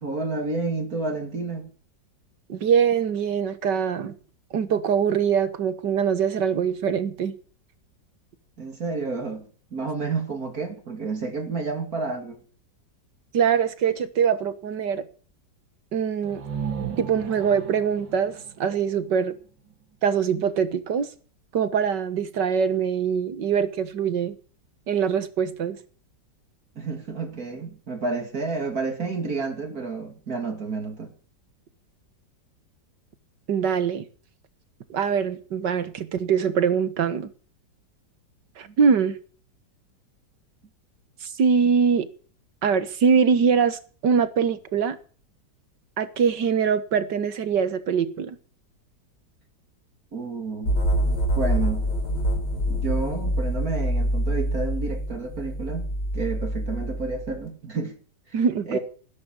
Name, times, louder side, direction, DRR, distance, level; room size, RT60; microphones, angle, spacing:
voice 1, 0.0-1.7 8.6-9.5 9.7-12.4 26.8-31.1 38.6-38.7 50.1-50.8 51.3-51.9 52.7-57.9 58.3-58.4 58.7-58.8, right 3 dB, 50° right, 2.9 m, -30 dB
voice 2, 2.5-4.2 4.5-7.4 13.3-15.1 15.9-16.4 17.0-19.3 20.0-21.1 21.5-24.4 24.9-25.8 33.5-34.1 34.9-37.3 38.6-39.2 41.2-42.1 42.6-45.0 46.0-48.4 58.3-58.8, right 7 dB, 70° right, 2.0 m, -23 dB
sound 1, 16.2-20.0, right 7 dB, 85° right, 2.6 m, -36 dB
sound 2, 50.6-57.4, equal, 65° left, 5.0 m, -26 dB
18.0 x 10.5 x 7.1 m
omnidirectional pair, 2.0 m